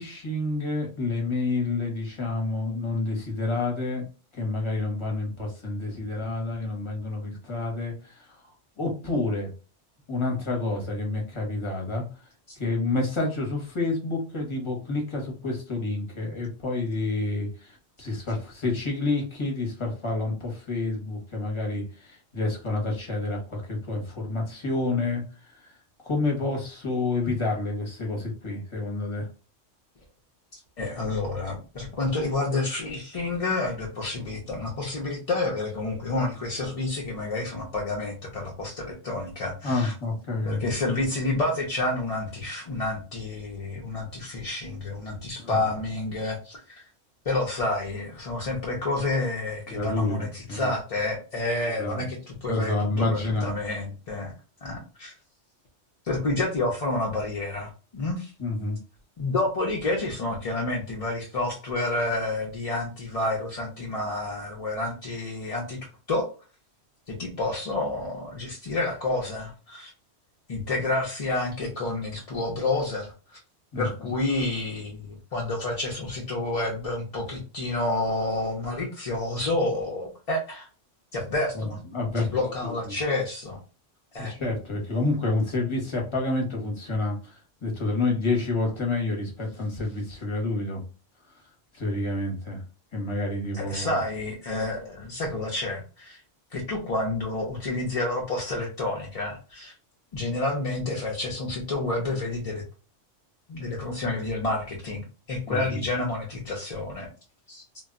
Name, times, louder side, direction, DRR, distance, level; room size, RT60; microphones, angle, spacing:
voice 1, 0.0-4.0 4.3-8.4 8.8-9.5 10.1-12.0 12.6-25.2 25.6-25.7 26.0-29.3 39.6-40.6 45.4-45.6 49.7-50.7 51.8-52.0 52.5-53.5 58.4-58.8 73.7-74.1 81.5-83.0 84.2-90.8 91.7-92.6 92.9-93.9 105.5-105.8, left 2 dB, 30° left, 0 dB, 0.8 m, -29 dB
voice 2, 30.5-39.9 40.4-46.8 47.2-54.3 54.6-55.1 56.0-58.3 59.2-65.8 66.1-66.3 67.1-69.9 70.5-73.4 73.8-80.7 81.1-81.8 82.2-83.6 84.1-84.3 93.5-96.2 96.5-99.7 100.1-102.6 103.5-107.1 107.5-107.6, left 2 dB, 45° left, -2 dB, 0.5 m, -29 dB
2.2 x 2.1 x 3.6 m, 0.34 s
omnidirectional pair, 1.3 m